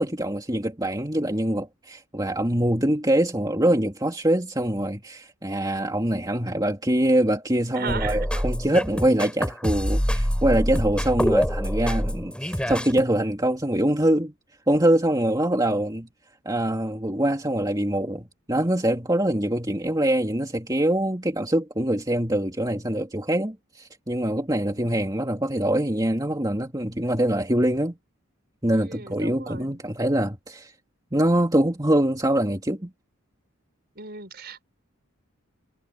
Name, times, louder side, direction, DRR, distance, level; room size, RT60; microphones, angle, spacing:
voice 1, 0.0-14.3 14.7-16.1 16.4-28.0 28.6-30.7 31.1-32.9, right 1 dB, 20° right, 2.8 m, -24 dB
voice 2, 7.7-8.3 24.6-24.9 28.7-29.8 34.0-34.6, right 4 dB, 50° right, 5.5 m, -36 dB
sound 1, 7.9-13.0, equal, 5° left, 7.9 m, -25 dB
head